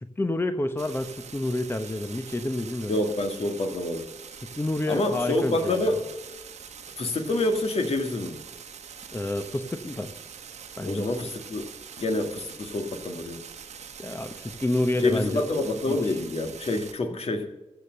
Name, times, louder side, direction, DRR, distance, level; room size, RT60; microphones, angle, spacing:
voice 1, 0.0-3.0 4.6-5.9 9.1-10.1 10.8-11.1 14.0-15.5 15.9-16.1, left 1 dB, 20° left, 8 dB, 0.9 m, -29 dB
sound 1, 0.8-16.9, right 7 dB, 90° right, 1.3 m, -44 dB
voice 2, 2.9-4.1 4.9-6.1 7.0-8.4 10.8-11.7 12.0-13.4 15.0-17.5, left 2 dB, 60° left, 5 dB, 1.9 m, -27 dB
15.0 x 6.8 x 7.6 m, 1.1 s
cardioid pair, 65°, 11 cm